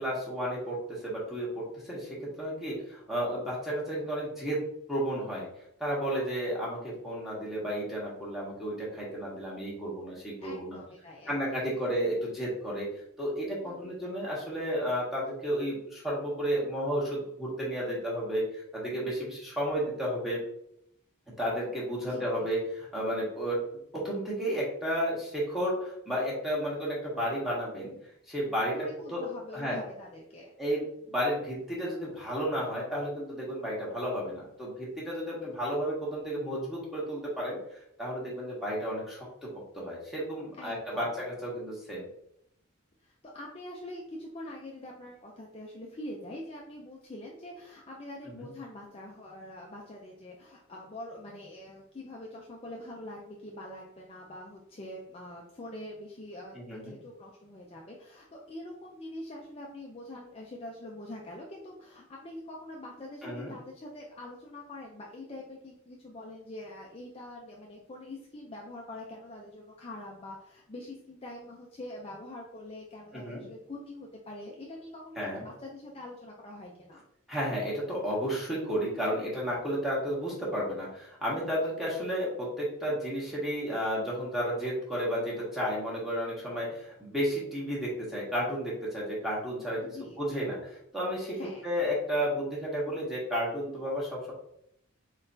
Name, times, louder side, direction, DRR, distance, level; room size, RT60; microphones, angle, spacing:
voice 1, 0.0-4.6 4.9-5.5 5.8-10.8 11.3-12.9 13.2-20.4 21.4-23.6 23.9-27.9 28.3-28.7 29.1-29.2 29.5-29.8 30.6-37.6 38.0-39.5 39.7-42.1 48.3-48.5 56.5-56.9 63.2-63.5 73.1-73.4 75.2-75.4 77.3-91.4 91.6-94.3, equal, ahead, -6 dB, 1.3 m, -32 dB
voice 2, 10.4-11.4 13.6-13.9 22.0-22.5 28.7-30.5 40.6-41.2 43.0-77.0 89.8-90.2 91.3-91.7, left 1 dB, 30° left, -2 dB, 0.4 m, -44 dB
4.0 x 3.9 x 2.7 m, 0.75 s
head